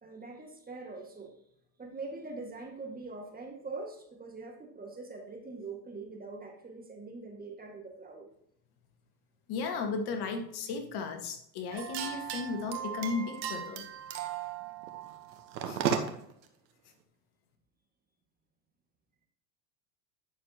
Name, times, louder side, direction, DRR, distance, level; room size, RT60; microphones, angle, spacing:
voice 1, 0.0-1.4 1.8-8.3 15.6-16.2, right 3 dB, 15° right, 2 dB, 1.9 m, -43 dB
voice 2, 9.5-13.8 15.7-15.9, left 4 dB, 50° left, 5 dB, 1.7 m, -35 dB
sound 1, 11.7-16.3, right 8 dB, 90° right, 1.2 m, -35 dB
9.9 x 6.5 x 2.9 m, 0.73 s
hypercardioid pair, 95°, 50 cm